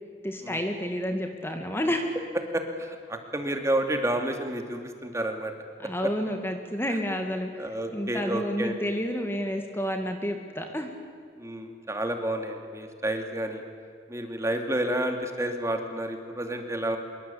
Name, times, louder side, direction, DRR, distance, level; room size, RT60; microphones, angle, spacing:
voice 1, 0.2-2.0 5.8-7.5 7.9-10.9, equal, 15° left, 4 dB, 2.0 m, -30 dB
voice 2, 2.5-5.5 6.0-6.1 7.6-8.8 11.4-13.6 14.1-17.0, right 1 dB, 15° right, 5 dB, 2.5 m, -30 dB
25.0 x 23.5 x 8.5 m, 2.3 s
head